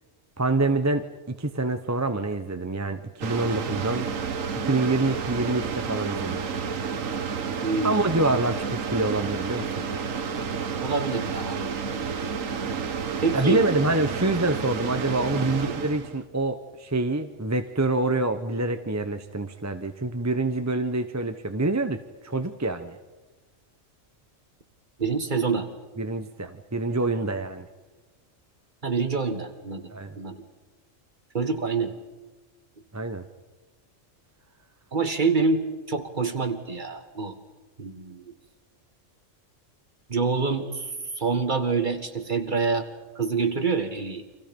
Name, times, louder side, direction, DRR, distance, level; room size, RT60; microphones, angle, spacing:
voice 1, 0.4-1.0 1.4-4.1 4.6-6.4 7.8-9.7 13.3-23.0 26.0-27.7 29.9-30.2 32.9-33.2, right 2 dB, 15° right, 8 dB, 0.7 m, -26 dB
sound 1, 3.2-16.2, right 6 dB, 85° right, 1.5 m, -30 dB
voice 2, 7.6-8.1 10.8-11.7 13.2-13.6 15.6-15.7 25.0-25.7 28.8-29.9 30.2-30.4 31.3-31.9 34.9-37.4 37.8-38.3 40.1-42.9 43.1-44.2, right 4 dB, 40° right, 7 dB, 1.8 m, -26 dB
29.5 x 25.0 x 5.3 m, 1.2 s
omnidirectional pair, 1.3 m